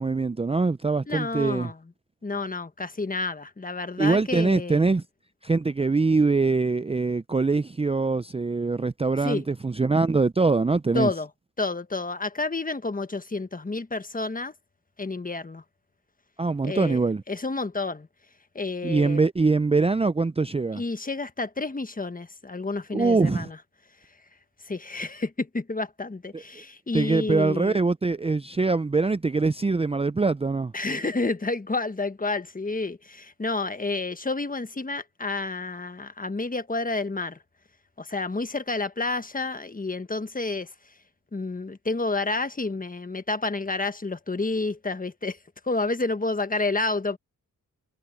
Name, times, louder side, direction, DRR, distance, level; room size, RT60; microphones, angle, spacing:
voice 1, 0.0-1.7 4.0-5.0 5.4-11.1 16.4-17.2 18.8-20.8 22.9-23.5 26.3-26.4 26.9-30.7, right 3 dB, 20° right, 0.5 m, -23 dB
voice 2, 1.1-1.8 2.2-4.9 9.2-9.4 10.9-11.3 11.6-14.5 15.0-15.6 16.6-17.0 17.3-18.1 18.5-19.2 20.7-23.6 24.6-27.8 30.7-37.4 38.0-40.7 41.3-45.4 45.6-47.2, left 3 dB, 25° left, 1.3 m, -30 dB
cardioid pair, 65°, 33 cm